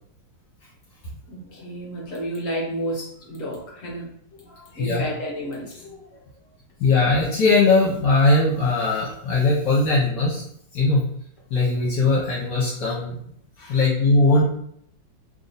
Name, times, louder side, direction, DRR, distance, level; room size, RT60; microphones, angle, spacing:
voice 1, 1.3-6.3 13.6-13.8, equal, 50° left, -3 dB, 1.2 m, -32 dB
voice 2, 6.8-10.4 10.7-11.1 11.5-13.2 13.7-14.4, left 3 dB, 70° left, -5 dB, 1.5 m, -19 dB
3.3 x 2.7 x 3.9 m, 0.68 s
omnidirectional pair, 2.1 m